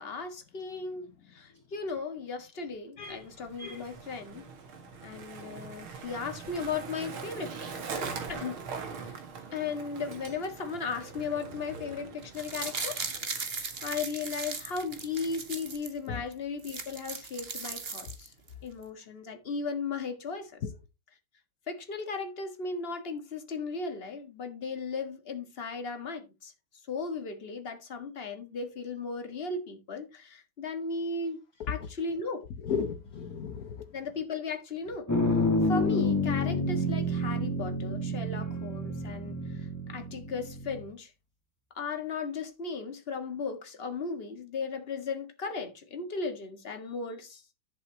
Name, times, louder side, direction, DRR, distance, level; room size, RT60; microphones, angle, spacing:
voice 1, 0.0-4.5 5.0-9.1 9.5-13.0 13.8-18.3 18.6-20.6 21.7-26.5 26.9-31.4 31.7-32.4 33.9-35.1 35.6-41.1 41.7-47.4, left 4 dB, 30° left, 1.6 m, -36 dB
Skateboard, 3.0-15.8, right 5 dB, 85° right, 2.6 m, -43 dB
sound 1, 12.2-15.9 16.3-16.4 16.6-18.5 18.8-18.9, right 4 dB, 35° right, 1.4 m, -38 dB
voice 2, 32.6-33.9, left 6 dB, 55° left, 1.3 m, -34 dB
sound 2, 35.1-40.8, left 1 dB, 10° left, 1.4 m, -29 dB
11.0 x 8.1 x 2.8 m
omnidirectional pair, 2.2 m